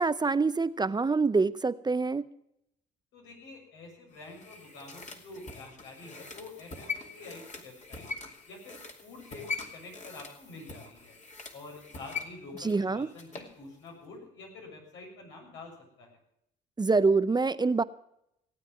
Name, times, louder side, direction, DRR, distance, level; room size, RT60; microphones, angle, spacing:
voice 1, 0.0-2.2 12.6-13.1 16.8-17.8, right 4 dB, 20° right, 14 dB, 0.6 m, -25 dB
voice 2, 3.1-8.1 8.5-11.1 11.5-16.2, left 3 dB, 80° left, 0 dB, 6.9 m, -47 dB
sound 1, 4.1-13.5 13.9-14.0, left 4 dB, 35° left, 2.7 m, -42 dB
17.5 x 9.0 x 7.4 m, 0.78 s
supercardioid pair, 75°, 20 cm